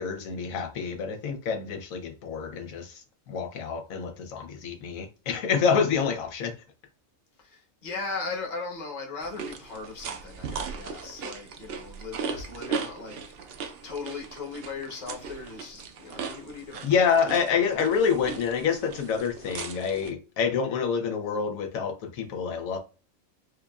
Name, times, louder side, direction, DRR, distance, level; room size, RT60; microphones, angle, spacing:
voice 1, 0.0-6.5 16.8-22.8, left 6 dB, 85° left, 1.1 m, -27 dB
voice 2, 7.4-13.5 13.8-17.4, left 4 dB, 35° left, 1.0 m, -38 dB
sound 1, 9.2-20.1, right 5 dB, 60° right, 0.7 m, -38 dB
4.7 x 2.5 x 2.3 m
omnidirectional pair, 1.4 m